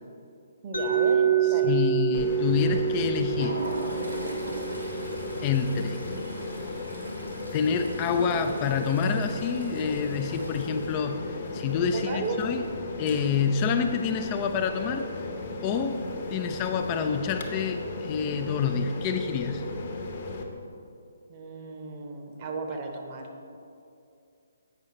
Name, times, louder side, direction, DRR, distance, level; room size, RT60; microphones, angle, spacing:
voice 1, 0.6-1.7 11.9-12.4 21.3-23.3, right 4 dB, 30° right, 2 dB, 0.9 m, -35 dB
Mallet percussion, 0.7-6.6, right 8 dB, 75° left, 1.1 m, -28 dB
voice 2, 1.6-3.6 5.4-6.0 7.5-11.2 11.5-12.6 13.0-15.1 15.6-16.0 16.3-19.6, left 6 dB, 25° left, 6 dB, 0.3 m, -27 dB
sound 1, 2.1-20.4, left 2 dB, 45° left, 0.9 m, -36 dB
Toilet flush, 2.9-13.7 14.0-14.2 14.5-14.7 15.7-16.2, right 1 dB, 80° right, 1.5 m, -42 dB
7.9 x 5.3 x 4.4 m, 2.5 s
figure-of-eight pair, 135°, 0 cm